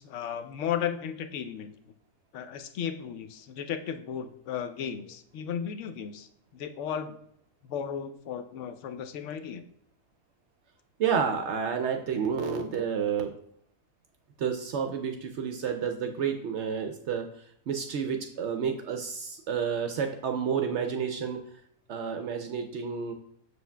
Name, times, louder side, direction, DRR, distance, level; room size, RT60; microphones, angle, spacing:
voice 1, 0.0-1.7 2.3-6.3 6.5-7.2 7.7-9.6, left 8 dB, 65° left, 9 dB, 0.8 m, -35 dB
voice 2, 11.0-13.3 14.4-17.3 17.7-21.4 21.9-23.1, right 7 dB, 65° right, 5 dB, 0.7 m, -30 dB
7.0 x 6.3 x 2.2 m, 0.72 s
omnidirectional pair, 1.5 m